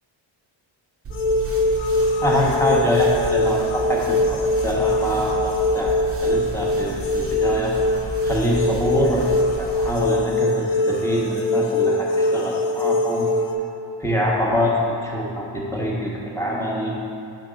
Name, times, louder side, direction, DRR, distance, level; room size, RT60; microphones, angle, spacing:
sound 1, 1.0-10.1, right 3 dB, 30° right, 0.5 m, -33 dB
sound 2, 1.1-13.5, left 2 dB, 85° left, 0.7 m, -22 dB
voice 1, 2.2-7.7 8.2-13.3 14.0-16.9, equal, 5° left, -4 dB, 0.7 m, -24 dB
5.8 x 3.7 x 4.9 m, 2.5 s
wide cardioid pair, 160°, 46 cm